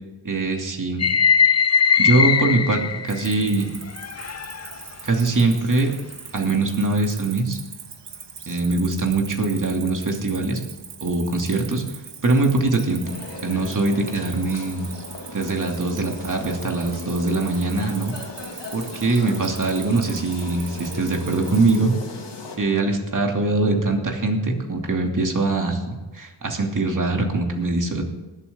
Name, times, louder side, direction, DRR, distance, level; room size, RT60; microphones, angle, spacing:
voice 1, 0.2-1.1 2.0-3.7 5.0-5.9 6.3-7.6 8.5-10.6 11.0-11.8 12.2-13.1 13.4-14.8 15.3-18.1 18.7-21.9 22.6-28.0, right 3 dB, 45° right, 2 dB, 2.7 m, -22 dB
sound 1, 1.0-3.4 4.0-4.8, left 6 dB, 40° left, 0.6 m, -20 dB
Cricket, 3.1-21.8, right 6 dB, 80° right, 1.4 m, -41 dB
sound 2, 13.0-22.6, left 3 dB, 80° left, 2.4 m, -38 dB
19.5 x 8.2 x 3.7 m, 1.2 s
wide cardioid pair, 75°, 42 cm